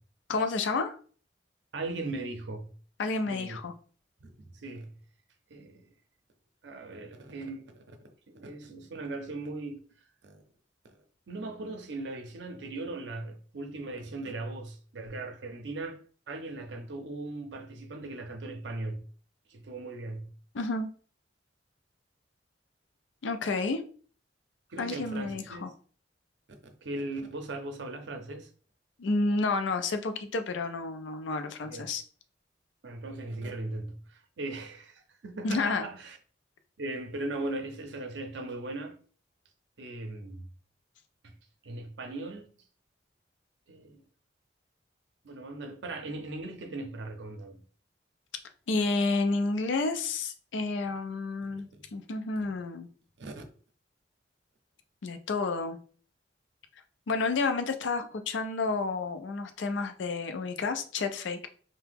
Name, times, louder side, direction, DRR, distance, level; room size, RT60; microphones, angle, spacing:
voice 1, 0.3-1.0 3.0-3.7 20.5-20.9 23.2-23.8 24.8-25.7 29.0-32.0 35.4-35.8 48.7-52.9 55.0-55.8 57.1-61.5, left 3 dB, 85° left, 0.4 m, -30 dB
voice 2, 1.7-2.7 3.3-3.6 4.2-4.9 5.5-5.9 6.6-8.0 8.3-9.8 10.2-10.4 11.3-19.0 19.5-20.3 24.7-25.6 26.8-28.5 31.7-31.8 32.8-36.2 36.8-39.0 39.8-40.4 41.2-41.3 41.6-42.5 43.7-44.0 45.2-47.6 51.5-51.9 53.2-53.4, right 2 dB, 70° right, 0.5 m, -38 dB
2.8 x 2.1 x 3.4 m
head